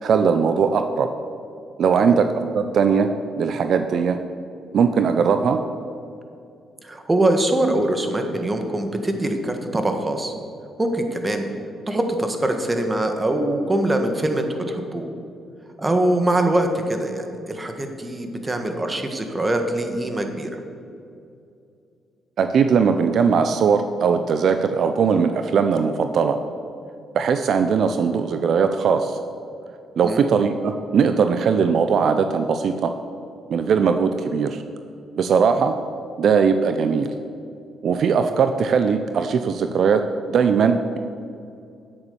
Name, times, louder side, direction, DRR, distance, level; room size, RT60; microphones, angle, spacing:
voice 1, 0.0-1.1 1.8-2.3 2.5-3.1 3.4-4.2 4.7-5.6 22.4-26.4 27.1-29.2 30.0-32.9 33.5-34.6 35.2-35.8 36.2-37.1 37.8-41.0, right 6 dB, 65° right, 8 dB, 0.6 m, -19 dB
voice 2, 6.8-10.3 10.8-11.4 11.9-15.1 15.8-20.6 30.0-30.2, right 1 dB, 20° right, 5 dB, 1.6 m, -23 dB
10.0 x 8.3 x 7.0 m, 2.5 s
cardioid pair, 90°, 0 cm